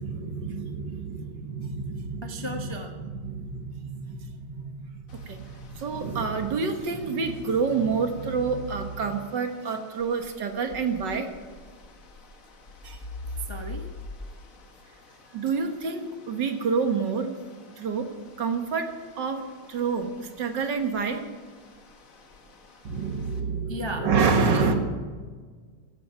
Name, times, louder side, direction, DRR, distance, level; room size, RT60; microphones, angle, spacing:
voice 1, 0.0-2.7 3.0-4.7 5.1-11.3 12.8-13.0 15.3-17.4 17.8-18.1 18.4-21.2 22.8-24.7, right 5 dB, 60° right, 6 dB, 1.9 m, -28 dB
voice 2, 2.2-2.9 13.5-13.9 23.7-24.1 24.5-24.7, equal, 20° left, 3 dB, 0.6 m, -35 dB
sound 1, 5.1-23.4, left 2 dB, 45° left, 1.7 m, -46 dB
15.5 x 11.5 x 5.9 m, 1.5 s
omnidirectional pair, 2.3 m